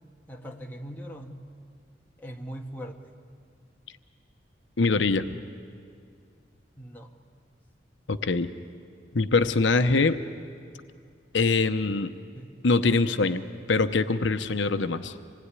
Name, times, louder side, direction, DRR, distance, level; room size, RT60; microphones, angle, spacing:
voice 1, 0.3-1.5 2.2-3.1 6.8-7.1 12.3-12.5, equal, 10° left, 1 dB, 1.6 m, -41 dB
voice 2, 4.8-5.3 8.1-8.5 9.1-10.2 11.3-12.1 12.6-13.4 13.7-15.1, left 3 dB, 85° left, 9 dB, 0.8 m, -23 dB
26.5 x 20.0 x 9.8 m, 2.3 s
head